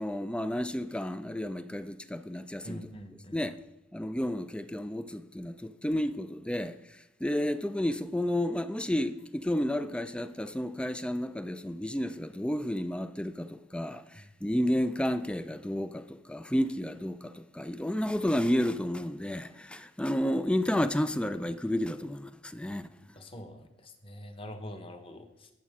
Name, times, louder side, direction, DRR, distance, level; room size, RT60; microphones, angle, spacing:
voice 1, 0.0-2.9 3.3-3.6 3.9-22.9, left 1 dB, 5° left, 0.4 m, -31 dB
voice 2, 2.6-3.4 14.2-14.3 23.1-25.5, equal, 25° left, 1.1 m, -44 dB
20.5 x 7.4 x 3.7 m
head